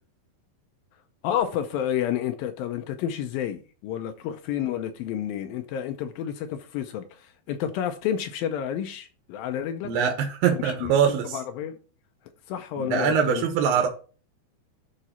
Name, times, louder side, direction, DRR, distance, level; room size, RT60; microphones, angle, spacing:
voice 1, 1.2-9.9 10.5-11.0 11.3-11.7 12.5-13.4, left 10 dB, 80° left, 2.1 m, -30 dB
voice 2, 9.8-11.4 12.8-13.9, right 7 dB, 70° right, 2.7 m, -23 dB
11.5 x 3.9 x 4.3 m
omnidirectional pair, 4.7 m